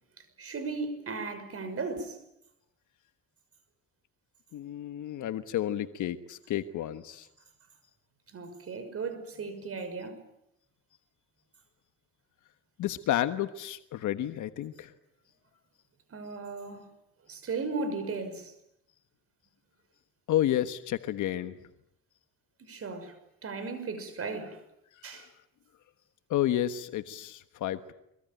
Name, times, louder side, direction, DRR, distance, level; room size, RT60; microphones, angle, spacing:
voice 1, 0.4-2.2 8.3-10.2 16.1-16.9 17.3-18.5 22.6-23.1 23.4-24.6 25.0-25.3, right 4 dB, 50° right, 6.1 m, -36 dB
voice 2, 4.5-7.3 12.8-14.9 20.3-21.6 25.1-25.3 26.3-27.9, left 12 dB, 80° left, 1.3 m, -31 dB
24.0 x 24.0 x 9.1 m
cardioid pair, 90°, 30 cm